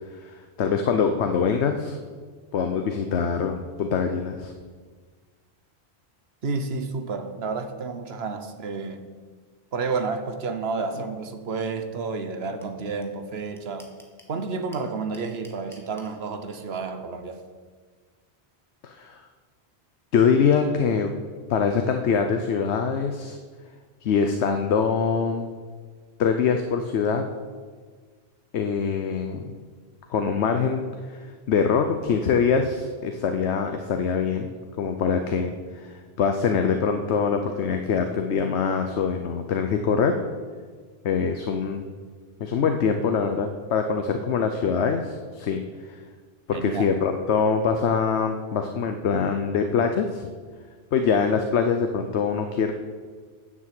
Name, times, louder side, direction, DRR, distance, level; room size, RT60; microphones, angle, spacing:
voice 1, 0.1-2.0 2.5-4.5 18.8-19.2 20.1-21.1 21.5-23.4 24.0-25.5 26.2-27.2 28.5-29.5 30.1-34.5 34.8-40.2 41.0-41.9 42.4-46.0 46.5-50.3 50.9-52.7, left 6 dB, 80° left, 6 dB, 1.0 m, -24 dB
voice 2, 6.4-9.0 9.7-13.9 14.3-17.4 46.5-46.9, right 4 dB, 70° right, 8 dB, 1.2 m, -30 dB
sound 1, 12.6-12.7 13.0-13.1 13.3-14.3 14.7-16.1, equal, ahead, 1.4 m, -50 dB
10.0 x 7.4 x 7.6 m, 1.6 s
omnidirectional pair, 1.1 m